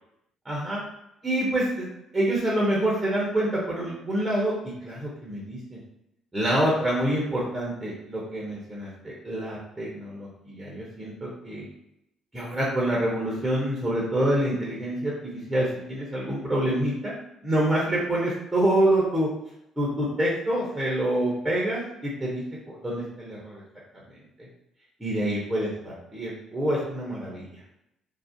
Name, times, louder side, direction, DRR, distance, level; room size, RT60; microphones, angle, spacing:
voice 1, 0.4-0.8 1.2-1.9 2.1-4.5 4.8-5.8 6.3-11.7 12.3-17.1 17.4-19.3 19.8-23.6 25.0-27.5, right 1 dB, 10° right, -5 dB, 0.6 m, -26 dB
2.4 x 2.0 x 2.5 m, 0.84 s
cardioid pair, 115°, 0 cm